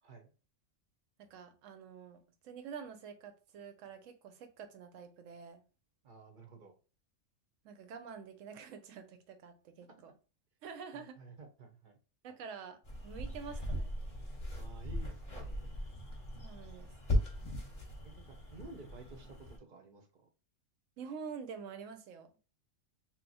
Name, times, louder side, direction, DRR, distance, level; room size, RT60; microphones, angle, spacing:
voice 1, 0.0-0.3 6.0-6.7 10.9-12.0 14.5-15.7 18.0-20.3, right 3 dB, 50° right, 5 dB, 0.6 m, -53 dB
voice 2, 1.2-5.6 7.6-10.1 10.6-11.2 12.2-13.9 16.4-16.9 21.0-22.4, right 6 dB, 85° right, 7 dB, 1.0 m, -47 dB
sound 1, 12.8-19.6, equal, 35° left, 0.7 m, -38 dB
2.9 x 2.0 x 4.0 m, 0.35 s
omnidirectional pair, 1.3 m